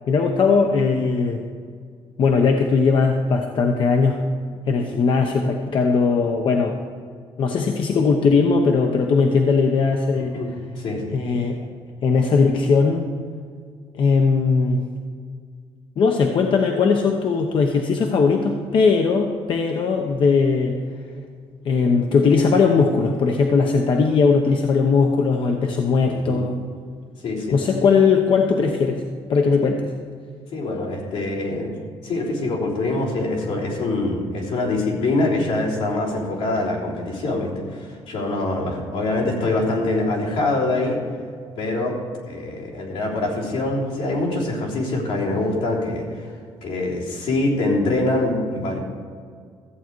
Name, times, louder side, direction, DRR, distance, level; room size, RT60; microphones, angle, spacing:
voice 1, 0.1-1.4 2.2-4.2 4.7-6.8 7.4-10.4 11.1-11.6 12.0-13.1 14.0-14.8 16.0-20.8 21.6-26.6 27.5-29.0 29.3-29.9, left 4 dB, 55° left, 3 dB, 0.9 m, -19 dB
voice 2, 10.1-10.5 10.8-11.1 26.0-26.4 27.2-27.6 29.6-29.7 30.5-31.7 32.0-41.0 41.6-42.0 42.3-46.2 46.6-48.8, left 2 dB, 85° left, -5 dB, 3.5 m, -24 dB
14.0 x 8.1 x 4.6 m, 2.1 s
cardioid pair, 110°, 11 cm